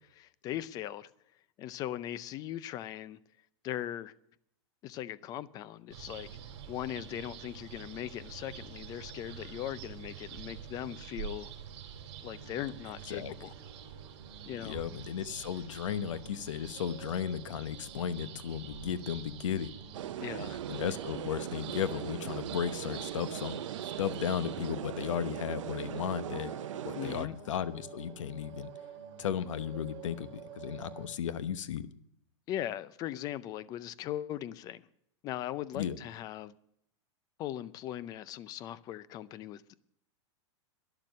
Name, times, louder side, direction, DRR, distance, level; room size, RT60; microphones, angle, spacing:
voice 1, 0.2-1.1 1.6-3.2 3.6-4.1 4.8-6.3 6.7-11.5 12.2-13.5 14.5-14.8 20.2-20.6 26.9-27.4 32.5-34.8 35.2-36.5 37.4-39.8, left 12 dB, 25° left, 0.5 m, -39 dB
sound 1, 5.9-24.7, right 9 dB, 60° right, 3.0 m, -47 dB
sound 2, 12.3-31.1, right 6 dB, 40° right, 2.5 m, -51 dB
voice 2, 14.6-19.7 20.7-23.5 23.8-26.5 26.8-28.7 29.2-31.9 35.7-36.0, left 9 dB, 85° left, 1.0 m, -35 dB
sound 3, 19.9-27.3, right 11 dB, 90° right, 0.6 m, -39 dB
12.0 x 11.0 x 6.3 m
supercardioid pair, 155°, 16 cm